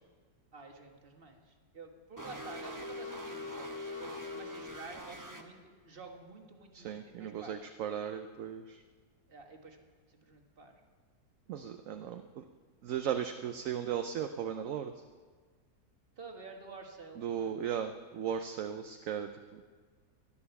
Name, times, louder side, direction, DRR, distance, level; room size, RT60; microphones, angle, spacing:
voice 1, 0.5-7.5 9.3-9.8 10.1-10.8 16.2-17.6, right 3 dB, 35° right, 3 dB, 1.6 m, -50 dB
sound 1, 2.2-5.4, left 2 dB, 15° right, 0.9 m, -42 dB
voice 2, 6.7-8.8 11.5-12.4 12.8-14.9 17.2-19.6, right 8 dB, 65° right, 8 dB, 0.9 m, -37 dB
14.0 x 11.0 x 7.0 m, 1.5 s
omnidirectional pair, 1.7 m